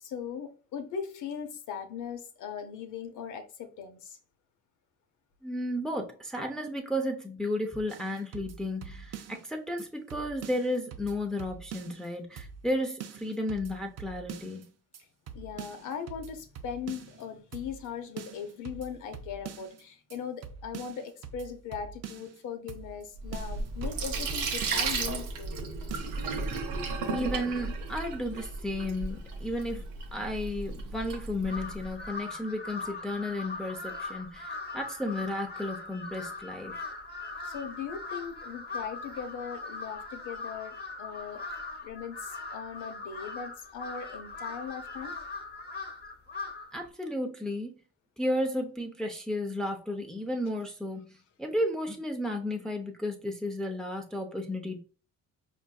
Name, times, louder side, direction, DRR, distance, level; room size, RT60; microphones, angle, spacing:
voice 1, 0.0-4.2 15.3-25.6 37.4-41.4 41.8-45.1, left 7 dB, 80° left, 0.7 m, -39 dB
voice 2, 5.4-14.6 27.1-29.9 30.1-36.8 46.7-47.7 48.2-51.1 51.4-54.8, left 1 dB, ahead, 0.5 m, -33 dB
sound 1, 7.9-9.5 9.8-9.9 10.1-12.1 12.4-12.7 13.0-14.6 14.9-15.0 15.3-17.2 17.5-17.9 18.2-19.8 20.1-20.2 20.4-22.4 22.7-23.0 23.3-25.0 25.3-25.4 25.6-26.2, right 7 dB, 55° right, 0.5 m, -44 dB
Sink (filling or washing), 23.2-32.0, right 3 dB, 85° right, 0.8 m, -34 dB
Crow, 31.4-46.8, left 3 dB, 35° left, 0.8 m, -40 dB
4.5 x 2.6 x 2.2 m
cardioid pair, 90°, 30 cm